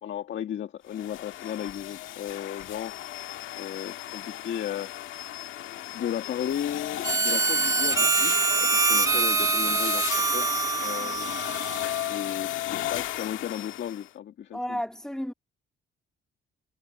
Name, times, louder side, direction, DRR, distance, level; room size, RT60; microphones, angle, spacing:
voice 1, 0.0-2.9 3.6-4.9 5.9-10.5 10.8-11.4 12.1-14.8, left 10 dB, 65° left, 1.9 m, -35 dB
sound 1, 0.9-14.1, left 14 dB, 85° left, 1.9 m, -35 dB
Harmonica, 7.0-12.2, right 4 dB, 15° right, 0.3 m, -25 dB
voice 2, 14.5-15.3, equal, 5° left, 2.1 m, -33 dB
cardioid pair, 90°, 20 cm